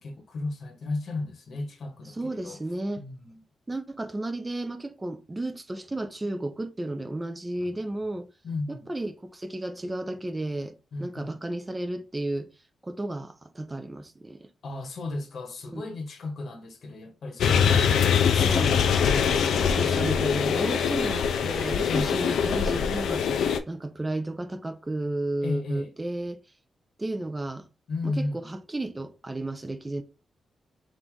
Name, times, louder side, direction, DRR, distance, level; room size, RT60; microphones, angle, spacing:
voice 1, 0.0-2.6 3.0-3.4 8.4-8.9 10.9-11.3 14.6-19.7 21.9-22.1 25.4-25.9 27.9-28.5, left 2 dB, 55° left, 1.0 m, -34 dB
voice 2, 2.1-3.1 3.7-8.3 8.7-10.7 11.0-12.5 12.8-14.5 15.7-15.8 18.4-19.0 19.5-23.3 23.7-26.4 27.0-27.7 28.0-30.0, right 1 dB, 15° right, 0.5 m, -33 dB
sound 1, 17.4-23.6, left 7 dB, 90° left, 0.4 m, -23 dB
3.7 x 2.6 x 4.5 m
wide cardioid pair, 130°, 0 cm